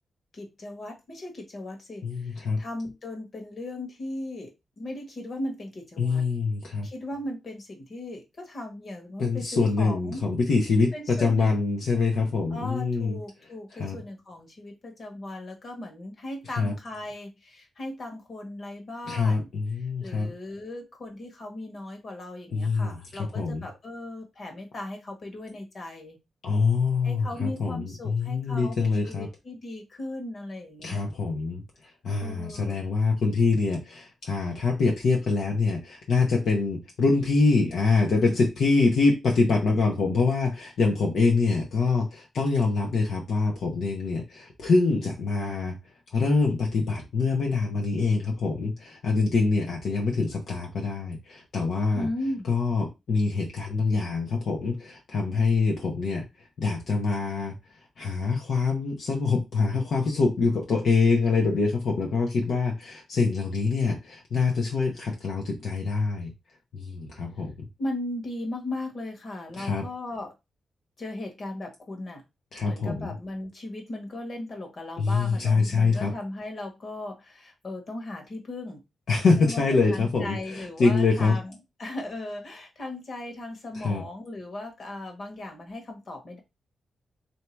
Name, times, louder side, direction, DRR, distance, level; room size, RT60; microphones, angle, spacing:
voice 1, 0.3-6.2 6.8-10.3 10.9-11.6 12.5-19.5 19.8-26.2 27.0-31.1 32.2-32.8 51.9-52.5 67.8-70.3 71.0-72.2 72.6-78.8 79.4-79.6 79.9-81.5 81.8-86.4, left 1 dB, 40° left, 1.3 m, -37 dB
voice 2, 2.0-2.6 6.0-6.9 9.2-13.2 13.7-14.0 16.5-16.7 19.1-20.3 22.5-23.6 26.4-29.3 30.8-45.8 46.1-52.1 52.5-57.6 58.0-66.3 66.7-67.7 69.6-69.9 72.5-73.1 75.0-76.1 79.1-81.4 83.7-84.0, left 4 dB, 65° left, 0.8 m, -25 dB
3.3 x 2.8 x 4.5 m
wide cardioid pair, 150°, 0 cm